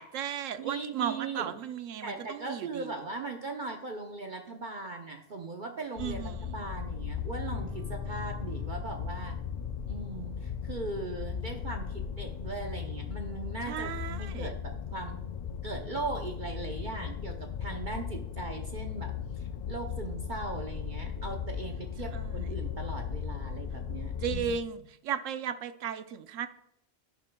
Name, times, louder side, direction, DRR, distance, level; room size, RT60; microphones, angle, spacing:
voice 1, 0.0-2.9 6.0-6.6 13.7-14.5 22.1-22.3 24.2-26.5, right 8 dB, 85° right, 11 dB, 1.0 m, -35 dB
voice 2, 0.6-1.5 2.0-9.4 9.8-15.2 15.6-17.4 17.6-24.5, right 3 dB, 45° right, 3 dB, 0.8 m, -39 dB
sound 1, 6.0-24.6, left 8 dB, 85° left, 0.3 m, -37 dB
sound 2, 7.5-16.4, left 4 dB, 20° right, 3.4 m, -50 dB
11.0 x 10.0 x 2.2 m, 0.77 s
omnidirectional pair, 1.3 m